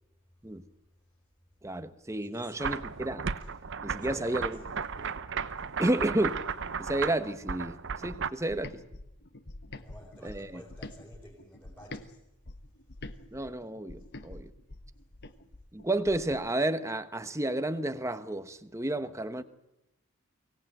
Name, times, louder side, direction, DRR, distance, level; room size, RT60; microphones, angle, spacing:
voice 1, 1.6-3.3 3.8-4.6 5.0-5.1 5.8-6.4 6.8-8.8 10.2-10.6 13.3-14.5 15.7-19.4, right 1 dB, 15° right, 1.0 m, -31 dB
voice 2, 2.2-2.5 3.4-3.5 3.9-4.5 9.7-12.2 12.9-13.3, equal, 10° left, 4.8 m, -52 dB
sound 1, 2.6-8.3, right 6 dB, 55° right, 0.8 m, -35 dB
sound 2, 8.1-12.1 12.4-16.4, left 2 dB, 50° left, 1.2 m, -46 dB
24.0 x 18.0 x 9.1 m
head